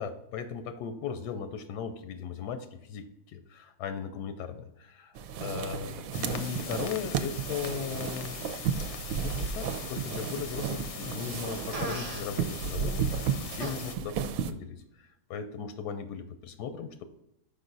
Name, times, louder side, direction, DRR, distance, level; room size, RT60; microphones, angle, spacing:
voice 1, 0.0-8.4 8.8-8.9 9.1-17.0, left 7 dB, 90° left, 9 dB, 1.2 m, -38 dB
sound 1, 5.2-14.5, right 7 dB, 70° right, 0.9 m, -33 dB
sound 2, 6.1-13.9, left 7 dB, 65° left, 0.7 m, -42 dB
Fart, 11.7-12.3 13.6-13.8, right 3 dB, 50° right, 0.4 m, -36 dB
6.1 x 5.2 x 3.9 m, 0.82 s
omnidirectional pair, 1.7 m